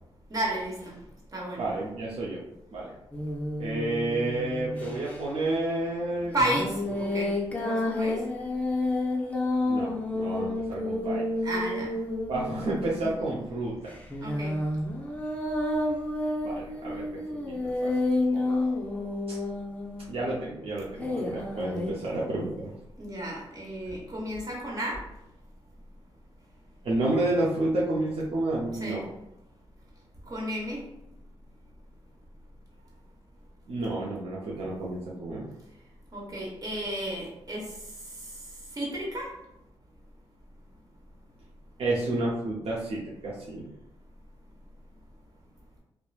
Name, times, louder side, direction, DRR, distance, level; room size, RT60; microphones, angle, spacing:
voice 1, 0.3-0.9 1.3-1.7 6.3-7.3 7.6-8.3 11.4-11.9 13.0-13.1 14.2-14.5 23.0-25.0 28.8-29.0 30.3-30.9 36.1-37.8 38.8-39.3, right 1 dB, 35° right, -4 dB, 1.1 m, -32 dB
voice 2, 1.6-2.4 2.7-2.9 3.6-6.3 9.6-11.2 12.3-13.9 16.4-17.9 18.3-18.4 19.3-19.4 20.1-22.7 26.8-29.1 33.7-35.5 41.8-43.7, right 2 dB, 65° right, -6 dB, 0.5 m, -30 dB
sound 1, 3.1-5.2 6.4-13.1 13.9-20.3 21.0-21.9, left 2 dB, 15° left, 0.5 m, -30 dB
2.9 x 2.1 x 2.3 m, 0.82 s
cardioid pair, 70°, 10 cm